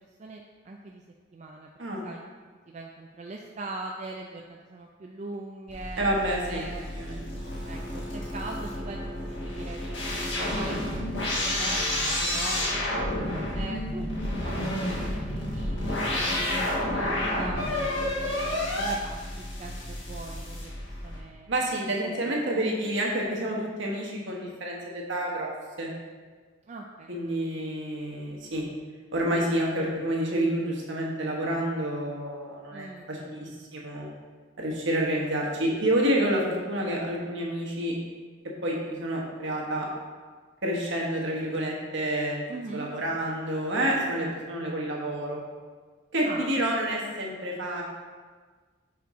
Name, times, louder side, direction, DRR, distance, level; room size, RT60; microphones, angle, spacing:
voice 1, 0.2-1.0 1.3-1.7 2.0-2.2 2.7-6.0 6.5-6.9 7.6-11.1 11.4-13.0 13.5-18.4 18.8-20.7 21.0-22.3 26.7-27.1 32.7-33.5 42.5-42.9 46.2-46.6, right 2 dB, 35° right, 0 dB, 0.3 m, -41 dB
sound 1, 5.7-21.2, left 1 dB, 60° left, 1.2 m, -30 dB
voice 2, 6.0-6.6 6.9-7.2 21.5-25.5 25.8-25.9 27.1-28.6 29.1-34.1 34.6-38.0 38.6-39.9 40.6-42.4 42.7-45.4 46.1-47.8, right 1 dB, 65° right, -2 dB, 1.2 m, -29 dB
5.9 x 4.4 x 3.6 m, 1.5 s
head